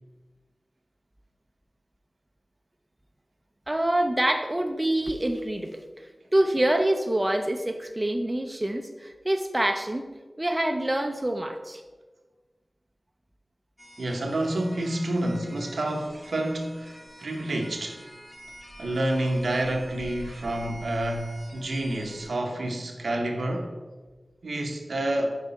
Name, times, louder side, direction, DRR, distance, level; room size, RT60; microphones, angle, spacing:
voice 1, 3.7-5.8 6.3-10.1 10.4-11.8, right 1 dB, 25° right, 0.5 m, -26 dB
sound 1, 13.8-22.3, equal, 10° left, 1.1 m, -47 dB
voice 2, 14.0-18.0 18.8-23.8 24.4-25.4, right 1 dB, 85° right, 0.7 m, -29 dB
5.6 x 4.7 x 4.0 m
wide cardioid pair, 60°, 0 cm